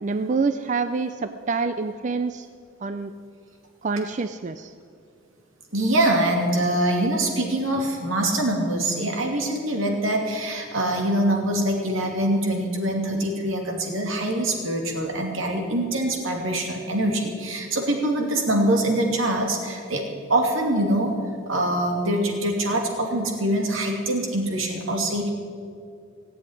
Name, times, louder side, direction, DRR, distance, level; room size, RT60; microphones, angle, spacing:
voice 1, 0.0-2.5 2.8-3.1 3.8-4.7, right 4 dB, 35° right, 10 dB, 0.4 m, -26 dB
voice 2, 5.7-20.0 20.3-21.1 21.5-25.3, right 1 dB, 80° right, 2 dB, 2.6 m, -24 dB
18.0 x 7.8 x 9.8 m, 2.3 s
head